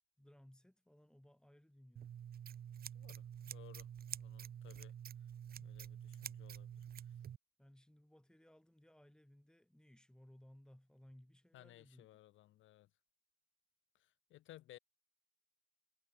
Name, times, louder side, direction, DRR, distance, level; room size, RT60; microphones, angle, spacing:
voice 1, 0.2-2.2 7.6-12.1, left 1 dB, 5° left, 6.2 m, -63 dB
Scissors, 2.0-7.4, right 9 dB, 50° right, 0.8 m, -48 dB
voice 2, 2.9-5.0 5.6-7.2 11.5-12.9 13.9-14.8, left 14 dB, 75° left, 0.8 m, -61 dB
cardioid pair, 90°, 20 cm